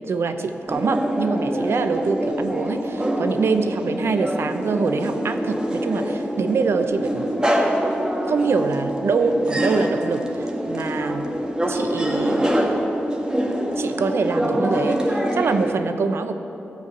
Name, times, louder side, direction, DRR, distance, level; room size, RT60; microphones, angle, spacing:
voice 1, 0.1-7.4 8.2-11.4 11.7-12.4 13.7-16.3, right 4 dB, 75° right, 8 dB, 0.7 m, -24 dB
sound 1, 0.7-15.7, right 1 dB, 20° right, 1.5 m, -25 dB
13.5 x 4.7 x 8.4 m, 3.0 s
cardioid pair, 60°, 4 cm